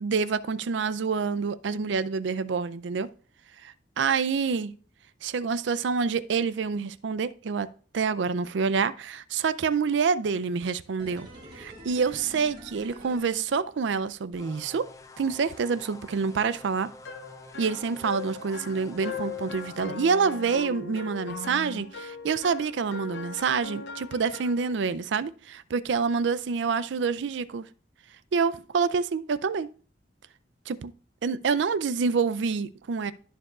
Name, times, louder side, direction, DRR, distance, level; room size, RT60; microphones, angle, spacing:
voice 1, 0.0-3.1 3.6-4.7 5.2-7.7 7.9-11.3 11.5-14.9 15.2-16.9 17.6-27.6 28.3-29.7 30.7-30.9 31.2-33.1, right 5 dB, 75° right, 0.4 m, -27 dB
sound 1, 11.0-14.1 14.4-14.5, equal, 25° right, 1.8 m, -46 dB
sound 2, 14.3-19.8, left 2 dB, 15° left, 0.5 m, -48 dB
sound 3, 17.1-24.7, left 5 dB, 65° left, 0.7 m, -39 dB
13.5 x 4.7 x 2.4 m
head